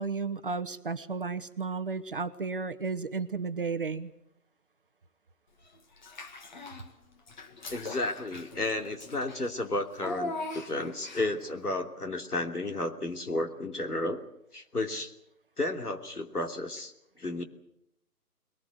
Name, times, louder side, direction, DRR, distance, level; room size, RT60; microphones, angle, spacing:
voice 1, 0.0-4.1, right 4 dB, 35° right, 10 dB, 1.0 m, -33 dB
Child speech kid speaking / Bathtub (filling or washing), 6.0-6.9 7.3-11.5, left 2 dB, 30° left, 1.9 m, -40 dB
voice 2, 7.7-14.2 14.5-15.1 15.6-16.9 17.2-17.4, left 2 dB, 70° left, 5 dB, 3.2 m, -32 dB
21.5 x 20.0 x 8.1 m, 0.79 s
figure-of-eight pair, 145°, 47 cm